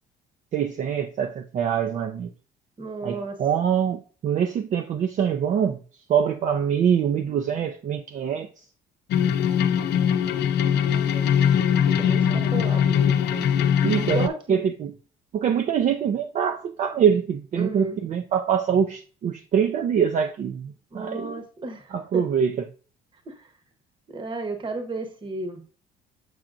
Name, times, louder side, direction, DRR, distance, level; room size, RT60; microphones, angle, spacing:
voice 1, 0.5-2.3 3.0-5.8 6.1-8.5 12.2-12.5 13.8-15.0 15.3-21.4 21.9-22.6, right 8 dB, 50° right, 0.5 m, -24 dB
voice 2, 2.8-3.4 10.6-11.4 11.9-13.5 14.0-14.6 17.6-18.0 20.9-22.2 23.3-23.5 24.1-25.6, right 3 dB, 30° right, 1.1 m, -34 dB
sound 1, 9.1-14.3, left 8 dB, 75° left, 0.7 m, -21 dB
7.5 x 5.8 x 2.5 m
cardioid pair, 110°, 17 cm